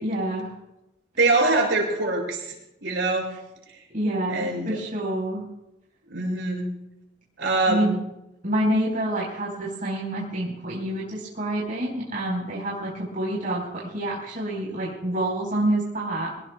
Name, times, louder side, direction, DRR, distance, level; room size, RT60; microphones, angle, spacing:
voice 1, 0.0-0.5 3.9-5.5 7.7-7.9 8.4-16.3, right 1 dB, 50° right, -4 dB, 4.3 m, -27 dB
voice 2, 1.2-2.5 2.8-3.3 4.3-4.8 6.1-6.7 7.4-7.9, right 2 dB, 75° right, -1 dB, 6.6 m, -23 dB
23.5 x 19.0 x 2.3 m, 0.88 s
head